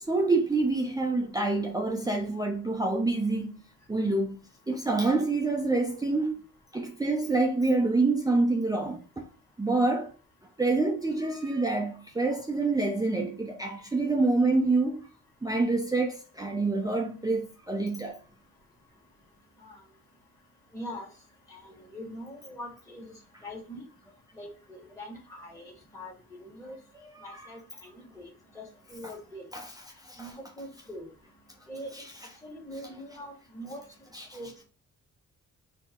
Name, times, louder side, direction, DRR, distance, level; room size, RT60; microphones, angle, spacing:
voice 1, 0.1-3.5 3.9-4.4 4.7-6.4 6.7-9.3 9.6-10.1 10.6-15.1 15.4-18.2 27.1-27.5 29.0-29.1 29.5-29.7 30.1-30.4 31.9-32.4 32.8-32.9 34.1-34.3, right 3 dB, 10° right, 0.6 m, -27 dB
voice 2, 20.7-21.1 21.5-23.1 23.4-23.8 24.3-26.8 27.2-28.3 28.5-28.6 28.9-29.4 30.2-31.1 31.7-31.9 32.4-33.8 34.3-34.6, equal, 10° left, 1.7 m, -42 dB
4.4 x 2.8 x 3.7 m
cardioid pair, 100°, 32 cm